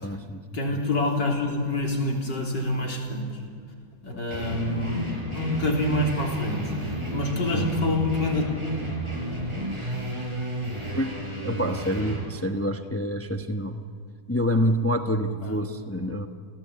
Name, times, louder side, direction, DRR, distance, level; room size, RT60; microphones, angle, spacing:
voice 1, 0.0-0.4 4.1-4.2 10.9-11.2 11.4-13.8 14.3-16.3, equal, 15° left, 6 dB, 0.6 m, -27 dB
voice 2, 0.5-3.4 4.0-5.1 5.3-8.5 15.4-15.6, left 2 dB, 90° left, 0 dB, 4.3 m, -27 dB
sound 1, 4.3-12.2, right 1 dB, 15° right, 5.3 m, -32 dB
30.0 x 17.0 x 8.7 m, 2.2 s
omnidirectional pair, 1.8 m